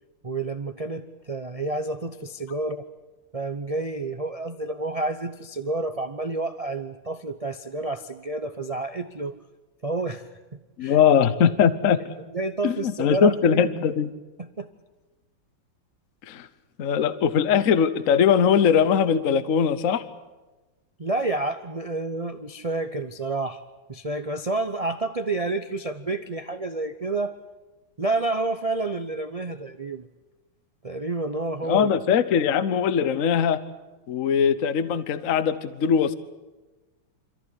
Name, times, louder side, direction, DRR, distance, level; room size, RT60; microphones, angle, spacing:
voice 1, 0.2-2.8 3.3-9.3 9.8-10.3 10.8-11.0 12.3-13.8 14.4-14.7 21.0-23.6 23.9-27.4 28.0-30.1 30.8-31.9, right 2 dB, 65° right, 9 dB, 0.3 m, -29 dB
voice 2, 10.8-12.0 12.6-14.1 16.3-16.5 16.8-20.0 31.7-33.6 34.1-36.1, left 7 dB, 50° left, 14 dB, 1.1 m, -21 dB
27.0 x 14.5 x 9.9 m, 1.2 s
omnidirectional pair, 2.1 m